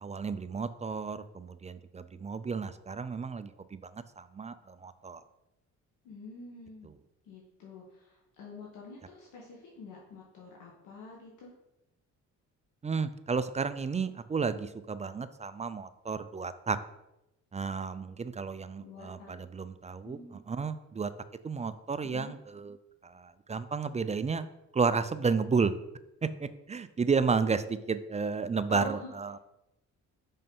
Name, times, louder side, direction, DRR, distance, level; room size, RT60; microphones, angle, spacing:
voice 1, 0.0-3.8 4.2-5.2 12.8-16.8 17.5-20.2 20.5-21.1 21.4-22.8 23.0-24.5 24.7-25.7 26.2-29.4, right 5 dB, 25° right, 12 dB, 0.4 m, -32 dB
voice 2, 6.0-6.9 7.3-11.6 18.8-19.3 20.0-20.4 22.0-22.4 28.7-29.1, left 3 dB, 85° left, -2 dB, 1.4 m, -46 dB
5.4 x 5.4 x 5.4 m, 0.92 s
cardioid pair, 90°, 30 cm